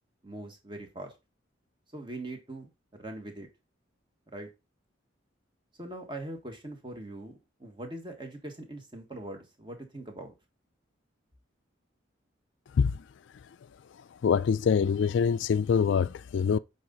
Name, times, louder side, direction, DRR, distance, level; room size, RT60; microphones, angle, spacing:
voice 1, 0.2-1.1 1.9-3.5 4.3-4.5 5.8-10.3, right 1 dB, 25° right, 1.6 m, -42 dB
voice 2, 14.2-16.6, left 6 dB, 65° left, 0.3 m, -24 dB
9.5 x 4.1 x 3.9 m
head